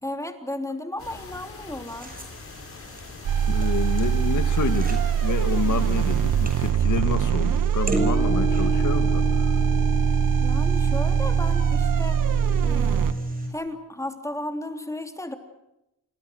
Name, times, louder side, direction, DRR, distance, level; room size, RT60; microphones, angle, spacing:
voice 1, 0.0-2.2 10.4-12.2 12.6-13.1 13.5-15.4, left 1 dB, 10° left, 6 dB, 3.4 m, -34 dB
sound 1, 1.0-6.7, left 4 dB, 45° left, 7.0 m, -43 dB
sound 2, 1.9-13.5, right 1 dB, 25° right, 7.2 m, -30 dB
sound 3, 3.2-13.1, right 8 dB, 75° right, 1.5 m, -22 dB
voice 2, 3.5-9.5, left 7 dB, 65° left, 9 dB, 2.5 m, -29 dB
29.5 x 24.5 x 6.5 m, 0.88 s
cardioid pair, 95°, 33 cm